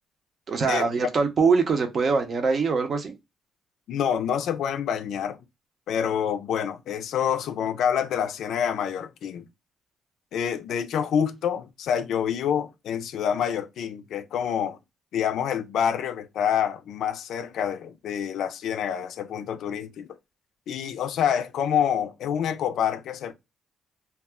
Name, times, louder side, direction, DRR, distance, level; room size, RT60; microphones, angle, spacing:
voice 1, 0.5-3.1, right 4 dB, 50° right, 0.7 m, -23 dB
voice 2, 3.9-5.4 5.9-9.4 10.3-14.8 15.1-20.2 20.7-23.3, left 8 dB, 75° left, 0.3 m, -27 dB
2.3 x 2.1 x 3.4 m
cardioid pair, 90°, 0 cm